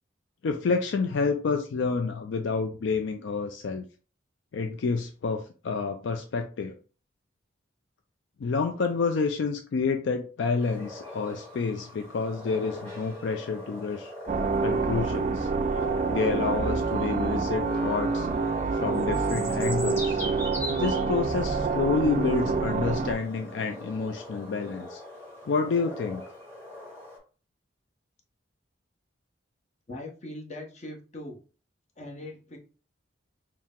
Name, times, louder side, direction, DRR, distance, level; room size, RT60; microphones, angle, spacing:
voice 1, 0.4-3.8 4.5-6.8 8.4-14.1 14.6-15.5 16.1-18.3 18.7-20.2 20.7-25.0 25.5-26.2, left 4 dB, 65° left, 5 dB, 0.4 m, -29 dB
sound 1, 10.6-27.2, left 1 dB, 15° left, 1.6 m, -41 dB
sound 2, 14.3-23.1, right 4 dB, 40° right, 0.3 m, -27 dB
voice 2, 29.9-31.4 32.0-32.6, left 1 dB, 35° left, 0 dB, 0.8 m, -40 dB
4.5 x 2.0 x 3.6 m, 0.37 s
head